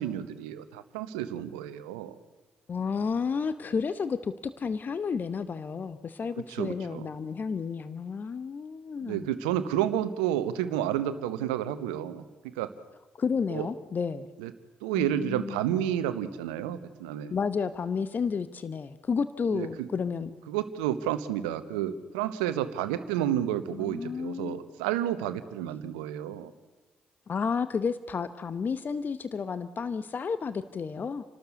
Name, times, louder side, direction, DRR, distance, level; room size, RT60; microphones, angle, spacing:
voice 1, 0.0-2.2 6.5-7.1 9.0-12.7 13.5-13.7 14.4-14.5 14.8-17.3 19.5-19.9 20.5-26.5, right 11 dB, 85° right, 12 dB, 1.1 m, -31 dB
voice 2, 2.7-9.3 13.1-14.3 14.9-15.6 17.3-20.4 23.7-24.6 27.3-31.2, left 5 dB, 45° left, 14 dB, 1.0 m, -31 dB
29.0 x 12.5 x 8.1 m, 1.2 s
hypercardioid pair, 45°, 4 cm